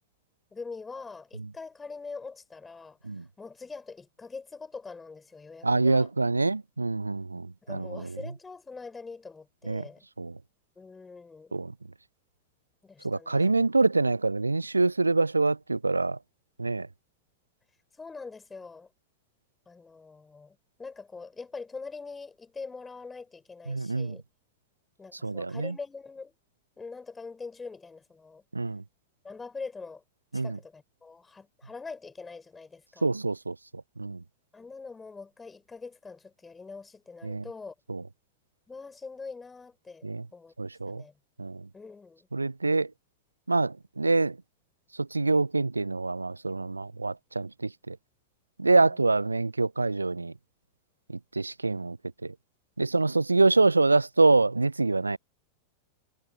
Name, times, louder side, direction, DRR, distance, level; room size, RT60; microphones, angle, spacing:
voice 1, 0.5-6.1 7.6-10.0 10.8-11.6 12.8-13.5 17.9-18.9 19.7-24.2 25.0-26.3 26.8-28.4 29.2-30.0 30.3-33.1 34.5-37.7 38.7-40.5 40.9-41.1 41.7-42.3 48.7-49.0, left 4 dB, 15° left, 6.5 m, -43 dB
voice 2, 5.6-8.0 9.7-9.8 10.2-10.3 11.5-11.7 13.0-16.2 16.6-16.9 23.7-24.2 25.2-25.7 28.5-28.8 30.3-30.6 33.0-33.6 34.0-34.2 37.2-37.4 37.9-38.0 40.0-40.2 40.6-41.0 41.4-41.6 42.3-42.9 43.5-44.4 45.0-48.0 48.6-50.3 51.4-52.0 52.2-52.3 52.8-55.2, right 3 dB, 80° right, 0.4 m, -25 dB
figure-of-eight pair, 90°, 0 cm